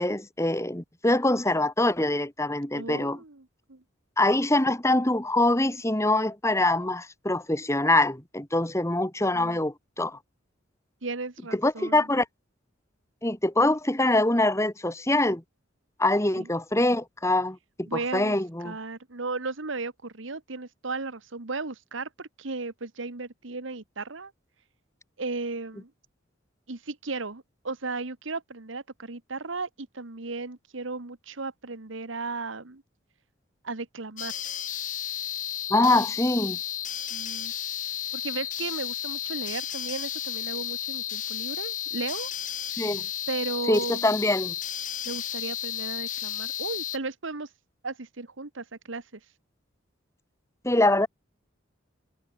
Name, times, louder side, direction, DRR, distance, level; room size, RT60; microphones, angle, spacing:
voice 1, 0.0-3.2 4.2-10.2 11.5-12.3 13.2-15.4 16.0-18.8 35.7-36.6 42.8-43.0 43.7-44.5 50.6-51.1, left 2 dB, 15° left, 2.0 m, -24 dB
voice 2, 2.7-3.8 9.3-9.6 11.0-12.1 16.4-16.5 17.9-18.4 18.6-24.3 25.2-25.9 26.7-32.8 33.6-34.3 37.1-37.5 38.1-42.3 43.3-44.1 45.0-47.5 47.8-49.2, right 3 dB, 70° right, 1.4 m, -35 dB
sound 1, 34.2-47.0, left 11 dB, 40° left, 2.5 m, -33 dB
head